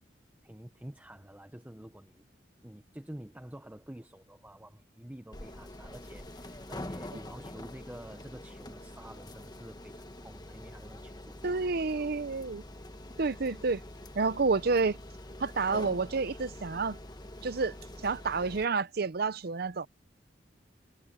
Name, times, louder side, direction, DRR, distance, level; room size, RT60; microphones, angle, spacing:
voice 1, 0.4-2.3 2.6-11.6 12.0-12.1, right 1 dB, 10° right, 0.8 m, -49 dB
sound 1, 5.3-18.7, left 1 dB, 20° left, 1.4 m, -45 dB
voice 2, 11.4-12.6 13.2-13.8 14.1-15.0 15.4-17.0 17.4-17.7 18.0-19.9, right 4 dB, 60° right, 0.6 m, -29 dB
head